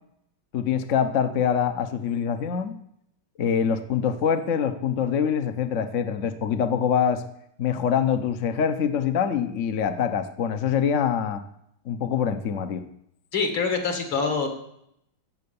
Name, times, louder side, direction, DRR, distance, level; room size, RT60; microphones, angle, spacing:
voice 1, 0.5-2.7 3.4-7.2 7.6-11.4 11.8-12.8, left 7 dB, 50° left, 8 dB, 1.0 m, -24 dB
voice 2, 13.3-14.5, left 4 dB, 75° left, 5 dB, 3.1 m, -25 dB
14.5 x 8.6 x 7.1 m, 0.75 s
omnidirectional pair, 2.2 m